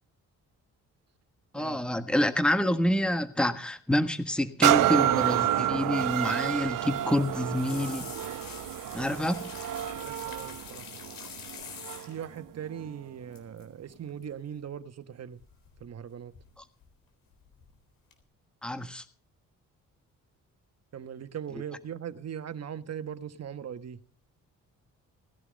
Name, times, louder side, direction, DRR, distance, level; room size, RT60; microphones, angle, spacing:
voice 1, 1.5-8.1 8.9-9.5 18.6-19.0, left 1 dB, 5° left, 1.4 m, -27 dB
sound 1, 4.6-12.2 12.8-12.9, right 13 dB, 75° right, 0.8 m, -29 dB
sound 2, 6.8-12.4 13.3-13.6 13.9-14.2 15.4-16.0 16.3-16.9 17.3-17.7 18.1-18.2, left 7 dB, 85° left, 4.0 m, -45 dB
voice 2, 9.9-10.9 12.0-15.4 15.8-16.3 20.9-24.0, right 8 dB, 50° right, 1.5 m, -40 dB
19.0 x 11.0 x 5.3 m
cardioid pair, 90°, 32 cm